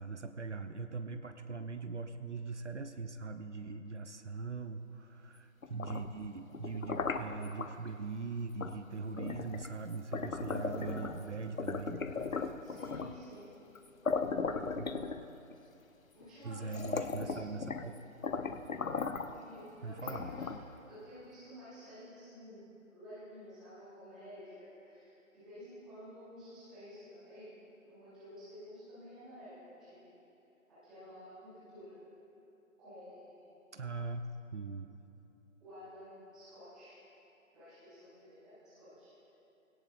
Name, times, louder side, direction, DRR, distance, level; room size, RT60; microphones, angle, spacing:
voice 1, 0.0-12.0 14.7-14.9 16.4-17.9 19.8-20.3 33.7-34.9, right 4 dB, 60° right, 9 dB, 0.8 m, -41 dB
sound 1, 5.6-7.7 8.6-8.8 9.2-11.2 11.6-13.2 13.8-13.9 14.1-15.5 16.2-16.3 16.7-17.9 18.2-19.4 20.0-20.8, left 4 dB, 75° left, 0.9 m, -37 dB
voice 2, 10.6-11.1 12.6-13.5 16.1-17.6 19.3-20.5 20.9-22.6 22.9-27.5 27.8-30.1 30.7-32.0 32.8-33.6 35.6-37.0 37.5-39.1, equal, ahead, -14 dB, 1.0 m, -51 dB
21.5 x 17.0 x 2.5 m, 2.9 s
figure-of-eight pair, 155°, 41 cm